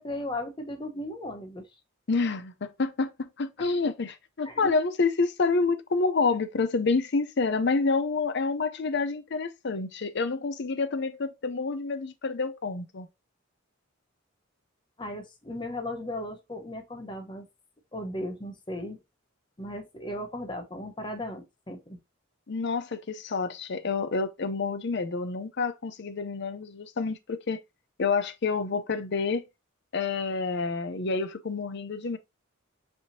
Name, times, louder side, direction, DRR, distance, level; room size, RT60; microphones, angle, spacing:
voice 1, 0.0-1.6 4.4-4.7 15.0-17.4 17.9-19.0 19.6-22.0, left 1 dB, 20° left, 0.9 m, -36 dB
voice 2, 2.1-13.1 22.5-27.6 28.0-29.4 29.9-32.2, left 4 dB, 55° left, 0.6 m, -28 dB
5.4 x 3.5 x 2.7 m
head